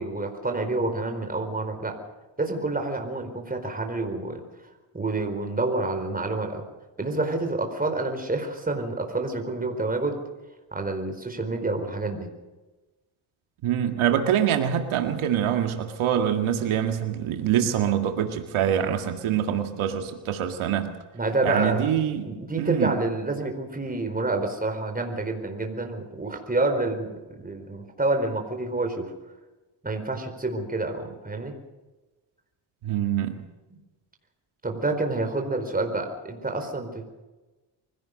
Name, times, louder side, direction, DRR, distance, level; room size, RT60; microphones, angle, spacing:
voice 1, 0.0-2.0 2.4-4.4 4.9-6.6 7.0-10.2 10.7-12.3 21.1-21.8 22.2-29.1 29.8-31.5 34.6-37.0, right 2 dB, 20° right, 4 dB, 4.6 m, -28 dB
voice 2, 13.6-20.9 21.4-22.3 22.6-23.0 32.8-33.4, right 9 dB, 90° right, 5 dB, 2.1 m, -25 dB
24.0 x 17.0 x 6.6 m, 1.1 s
cardioid pair, 100°, 48 cm